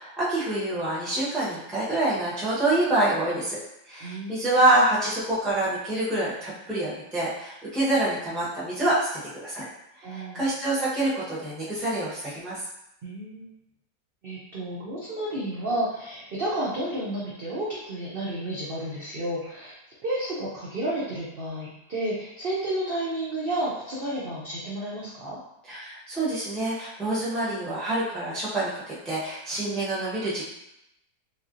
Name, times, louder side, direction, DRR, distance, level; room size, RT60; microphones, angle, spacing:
voice 1, 0.0-3.6 3.9-9.7 10.0-12.6 25.7-30.5, right 1 dB, ahead, -8 dB, 0.5 m, -26 dB
voice 2, 4.0-4.5 10.0-10.5 13.0-13.5 14.2-19.7 20.0-25.4, right 1 dB, 70° right, -6 dB, 0.5 m, -31 dB
3.3 x 2.5 x 2.4 m, 0.84 s
omnidirectional pair, 1.7 m